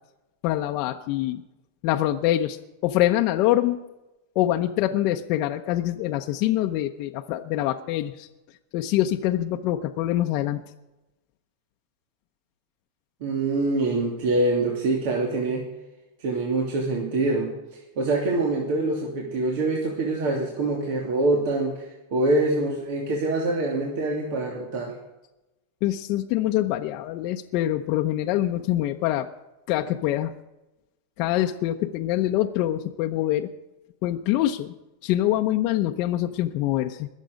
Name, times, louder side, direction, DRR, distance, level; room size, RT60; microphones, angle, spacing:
voice 1, 0.4-1.4 1.8-3.8 4.3-8.3 8.7-10.6 25.8-29.3 29.7-30.3 31.2-33.5 34.0-34.7 35.0-37.1, left 13 dB, 50° left, 4 dB, 0.8 m, -25 dB
voice 2, 13.2-15.6 16.2-17.5 18.0-21.8 22.1-25.0, right 2 dB, 65° right, -1 dB, 2.7 m, -25 dB
21.5 x 7.5 x 5.2 m, 0.98 s
supercardioid pair, 135°, 0 cm